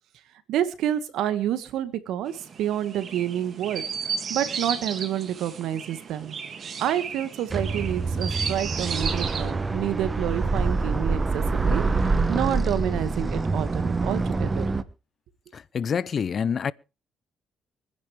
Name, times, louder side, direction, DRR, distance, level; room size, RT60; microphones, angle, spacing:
voice 1, 0.5-2.3 2.6-3.8 4.3-6.3 6.8-11.8 12.3-14.7, right 11 dB, 85° right, 1.7 m, -28 dB
Chirp tweet, 2.3-9.5, right 6 dB, 50° right, 2.2 m, -34 dB
sound 1, 7.5-14.8, right 3 dB, 25° right, 1.1 m, -26 dB
voice 2, 15.5-16.7, left 7 dB, 50° left, 0.7 m, -27 dB
24.5 x 10.5 x 3.4 m
cardioid pair, 90°, 0 cm